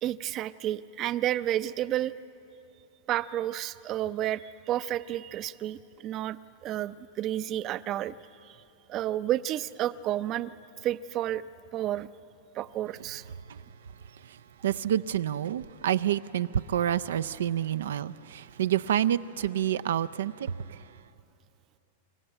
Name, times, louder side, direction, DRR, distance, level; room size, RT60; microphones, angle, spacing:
voice 1, 0.0-2.1 3.1-8.1 8.5-8.6 8.9-10.5 10.8-11.4 11.7-12.1 12.5-13.2, right 13 dB, 35° right, 0.5 m, -31 dB
voice 2, 14.6-20.5, right 10 dB, 90° right, 0.4 m, -28 dB
26.0 x 14.5 x 8.9 m
supercardioid pair, 145°, 0 cm